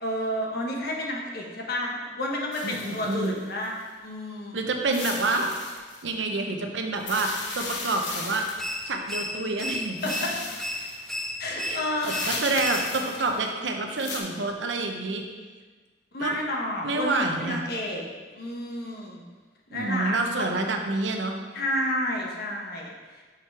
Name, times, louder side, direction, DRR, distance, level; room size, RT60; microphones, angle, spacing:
voice 1, 0.0-3.7 4.0-4.6 10.0-10.3 11.4-12.3 16.1-18.0 18.3-19.2 19.7-20.5 21.5-23.2, left 1 dB, 60° left, -1 dB, 1.1 m, -30 dB
sound 1, 2.5-3.8 4.9-6.0 6.9-8.9 10.0-11.2 12.0-13.5 13.9-14.2, left 3 dB, 80° left, 1.0 m, -36 dB
voice 2, 2.6-3.3 4.5-5.5 6.0-8.5 8.8-10.3 11.6-15.2 16.2-16.4 16.8-17.6 19.7-21.3, right 3 dB, 90° right, 3 dB, 0.8 m, -28 dB
sound 2, 8.6-13.2, left 1 dB, ahead, 0.3 m, -34 dB
6.3 x 4.5 x 4.7 m, 1.4 s
head